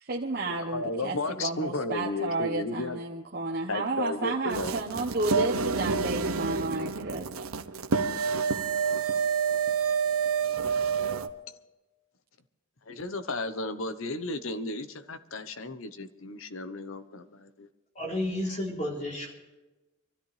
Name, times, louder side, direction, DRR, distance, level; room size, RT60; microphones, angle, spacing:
voice 1, 0.0-7.3, right 2 dB, 45° right, -1 dB, 1.1 m, -32 dB
voice 2, 0.7-3.0 3.7-4.8 12.9-17.7, left 2 dB, 70° left, 11 dB, 1.0 m, -34 dB
sound 1, 4.5-11.3, right 5 dB, 90° right, 0.8 m, -28 dB
voice 3, 18.0-19.3, left 1 dB, 35° left, -2 dB, 3.8 m, -31 dB
24.5 x 13.5 x 3.3 m, 1.1 s
head